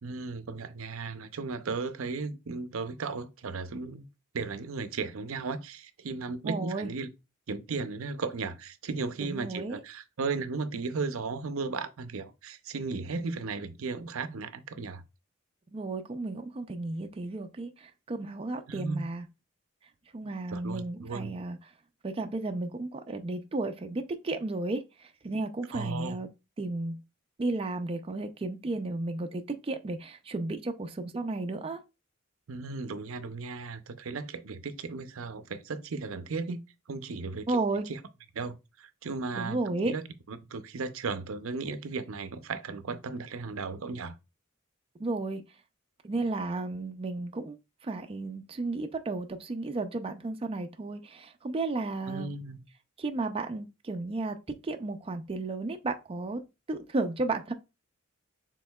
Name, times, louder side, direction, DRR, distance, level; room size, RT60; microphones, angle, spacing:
voice 1, 0.0-4.1 4.3-7.1 7.5-15.0 18.7-19.0 20.5-21.3 25.7-26.2 32.5-36.6 36.9-37.6 37.9-38.0 38.3-39.6 39.8-40.0 40.3-44.2 52.1-52.6, right 4 dB, 75° right, 0.6 m, -35 dB
voice 2, 6.4-6.9 9.3-9.8 15.7-19.3 20.1-21.6 22.0-26.3 26.6-27.0 27.4-31.8 37.5-37.9 39.3-39.9 45.0-45.4 46.0-47.6 47.8-52.3 53.0-54.4 54.6-56.4 56.7-57.5, right 2 dB, 25° right, 0.4 m, -33 dB
6.3 x 3.7 x 2.3 m
head